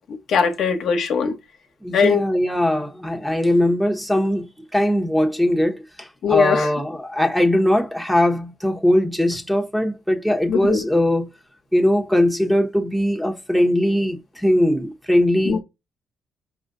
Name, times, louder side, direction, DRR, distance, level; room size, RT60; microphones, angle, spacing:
voice 1, 0.3-1.3 1.9-2.2 6.2-6.7 10.5-10.8 15.5-15.6, left 6 dB, 70° left, 1.0 m, -20 dB
voice 2, 1.8-4.5 4.7-11.3 11.7-15.6, left 1 dB, ahead, 1.0 m, -20 dB
4.8 x 2.5 x 3.8 m
cardioid pair, 90°, 0 cm